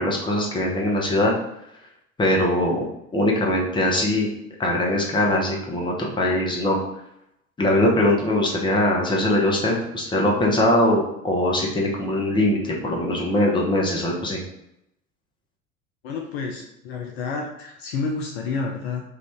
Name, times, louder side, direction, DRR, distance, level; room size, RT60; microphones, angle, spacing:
voice 1, 0.0-1.3 2.2-2.8 3.1-4.3 4.6-6.8 7.6-14.4, left 1 dB, 10° left, -2 dB, 0.8 m, -21 dB
voice 2, 16.0-19.0, left 4 dB, 50° left, 1 dB, 0.6 m, -29 dB
3.3 x 2.5 x 3.5 m, 0.81 s
figure-of-eight pair, 70°, 41 cm